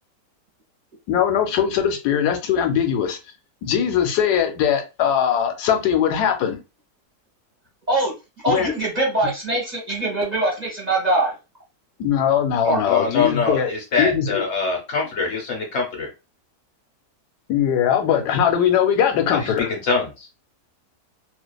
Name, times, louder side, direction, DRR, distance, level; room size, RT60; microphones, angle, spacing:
voice 1, 1.1-3.2 3.6-6.6 8.5-8.7 12.0-13.7 14.0-14.4 17.5-19.7, left 9 dB, 90° left, 1.1 m, -20 dB
voice 2, 8.4-11.3 12.6-12.8, right 2 dB, 35° right, 0.8 m, -22 dB
voice 3, 12.9-16.1 19.3-20.3, left 4 dB, 55° left, 0.9 m, -24 dB
2.5 x 2.3 x 2.2 m
omnidirectional pair, 1.6 m